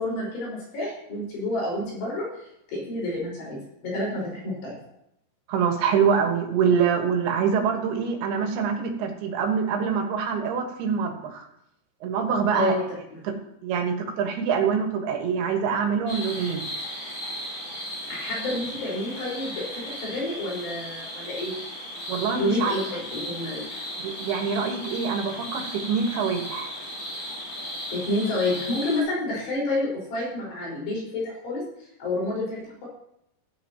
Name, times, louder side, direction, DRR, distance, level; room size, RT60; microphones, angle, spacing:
voice 1, 0.0-2.3 2.7-4.8 12.5-12.9 13.1-13.2 18.1-21.5 22.4-22.8 23.1-23.6 27.9-31.6 32.0-32.9, left 1 dB, 80° left, -4 dB, 7.0 m, -29 dB
voice 2, 5.5-11.5 12.0-12.7 13.2-13.3 13.6-16.7 22.1-22.7 24.0-26.7, right 6 dB, 75° right, 3 dB, 3.4 m, -25 dB
sound 1, 16.1-29.0, equal, 60° left, 5.6 m, -36 dB
16.5 x 9.7 x 3.0 m, 0.78 s
omnidirectional pair, 4.7 m